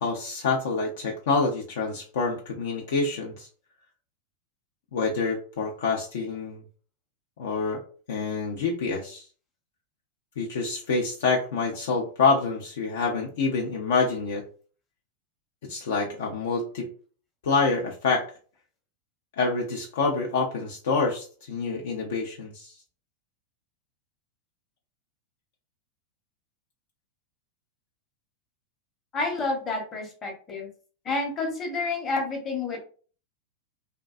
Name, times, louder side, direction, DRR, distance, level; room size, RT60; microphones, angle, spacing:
voice 1, 0.0-3.5 4.9-6.6 7.4-7.8 8.1-9.3 10.4-14.4 15.6-16.9 17.4-18.3 19.4-22.7, left 4 dB, 60° left, -1 dB, 0.5 m, -27 dB
voice 2, 29.1-30.7 31.0-32.8, left 3 dB, 25° left, 2 dB, 0.8 m, -29 dB
2.5 x 2.2 x 2.4 m, 0.40 s
figure-of-eight pair, 90°, 0 cm